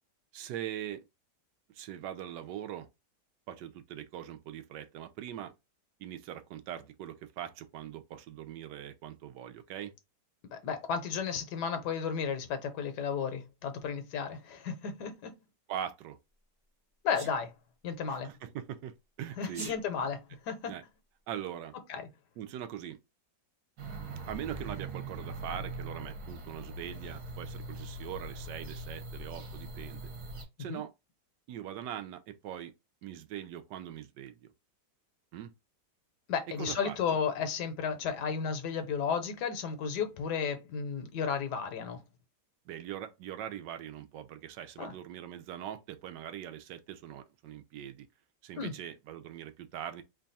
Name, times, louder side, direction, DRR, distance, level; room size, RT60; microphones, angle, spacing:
voice 1, 0.3-1.1 1.7-2.9 3.5-5.5 6.0-9.9 15.7-16.2 18.1-19.7 20.7-20.8 21.3-21.8 22.4-23.0 24.3-30.1 30.6-30.9 31.5-32.7 33.0-34.5 35.3-35.5 36.6-37.0 42.7-48.1 48.4-50.0, right 10 dB, 85° right, 1.2 m, -42 dB
voice 2, 10.5-15.3 17.0-17.5 17.8-18.3 19.4-20.7 21.9-22.1 30.7-30.8 36.3-42.0 44.8-44.9 48.6-48.7, left 6 dB, 75° left, 1.3 m, -33 dB
Sneeze, 17.1-17.4 19.4-19.8, right 3 dB, 30° right, 0.4 m, -42 dB
sound 1, 23.8-30.4, right 2 dB, 65° right, 1.4 m, -42 dB
3.2 x 2.3 x 4.0 m
omnidirectional pair, 1.8 m